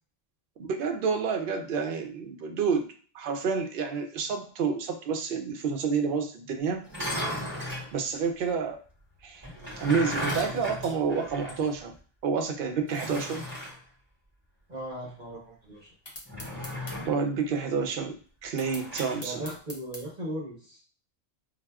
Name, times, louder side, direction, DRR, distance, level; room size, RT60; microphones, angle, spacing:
voice 1, 0.6-2.8 3.1-6.8 7.9-8.8 9.2-9.4 9.8-11.9 12.2-13.4 17.1-18.2 18.4-19.4, right 5 dB, 60° right, 5 dB, 0.7 m, -29 dB
sound 1, 6.8-7.9 9.4-11.7 12.0-12.1 12.9-13.8 16.3-17.2 18.6-19.2, equal, 25° right, 1.1 m, -35 dB
voice 2, 14.7-15.9 19.2-20.8, right 1 dB, 45° right, -5 dB, 1.1 m, -38 dB
sound 2, 16.1-17.0 18.6-20.0, left 1 dB, 30° left, 0.6 m, -43 dB
4.5 x 2.0 x 2.3 m, 0.41 s
omnidirectional pair, 1.1 m